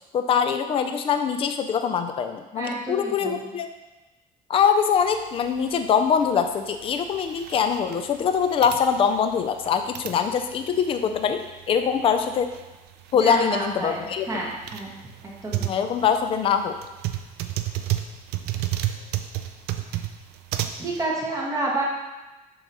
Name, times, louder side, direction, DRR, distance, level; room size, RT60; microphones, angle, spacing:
voice 1, 0.0-3.7 4.5-12.5 13.1-14.4 15.6-16.8, left 7 dB, 35° left, 7 dB, 0.4 m, -23 dB
voice 2, 2.6-3.5 13.2-14.9 15.4-15.7 20.8-21.8, right 2 dB, 20° right, -5 dB, 1.5 m, -29 dB
sound 1, 5.0-21.0, right 13 dB, 85° right, 0.5 m, -33 dB
7.3 x 3.0 x 5.3 m, 1.1 s
cardioid pair, 160°, 16 cm